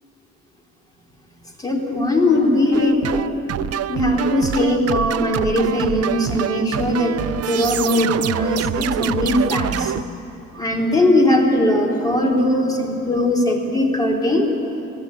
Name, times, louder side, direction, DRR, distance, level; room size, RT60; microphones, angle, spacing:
voice 1, 1.6-3.3 3.9-9.9 10.5-14.5, left 1 dB, 10° left, -1 dB, 3.7 m, -19 dB
sound 1, 2.7-10.0, right 11 dB, 55° right, 0.6 m, -26 dB
19.0 x 14.5 x 9.7 m, 2.8 s
cardioid pair, 90°, 30 cm